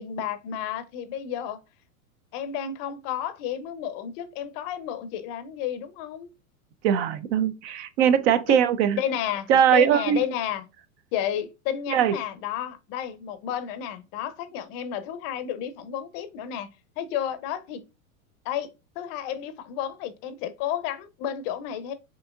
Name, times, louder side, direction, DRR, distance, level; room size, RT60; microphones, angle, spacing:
voice 1, 0.0-1.6 2.3-6.3 8.5-8.6 9.0-10.6 11.1-16.7 17.0-17.8 18.4-18.7 19.0-21.9, left 9 dB, 45° left, 0.6 m, -31 dB
voice 2, 6.8-9.0 9.5-10.2 11.9-12.1, right 9 dB, 50° right, 0.5 m, -21 dB
5.2 x 2.8 x 2.2 m
hypercardioid pair, 110°, 43 cm